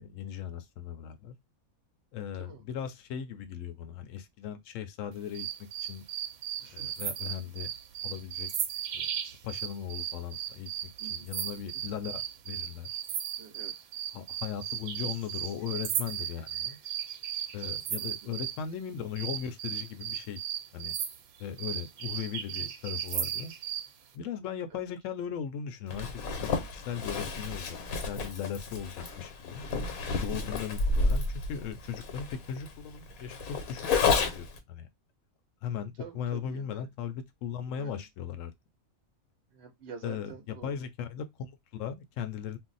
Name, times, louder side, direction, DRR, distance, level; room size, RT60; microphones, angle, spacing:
voice 1, 0.0-1.3 2.1-5.5 5.8-6.0 6.7-7.7 8.0-8.5 8.9-9.1 9.4-10.7 11.1-12.9 14.1-16.8 17.5-20.4 20.7-21.0 21.4-23.5 24.1-29.7 30.2-31.2 31.5-34.9 35.6-38.5 40.0-42.6, left 8 dB, 70° left, 0.9 m, -38 dB
sound 1, 5.3-18.6 19.2-23.9, right 10 dB, 90° right, 1.0 m, -36 dB
voice 2, 6.6-7.0 11.0-11.3 13.4-13.9 18.0-18.4 24.7-24.8 36.0-36.9 37.7-38.0 39.5-40.8, right 6 dB, 60° right, 0.7 m, -47 dB
Zipper (clothing), 25.9-34.6, left 4 dB, 90° left, 1.2 m, -31 dB
2.6 x 2.0 x 3.8 m
omnidirectional pair, 1.4 m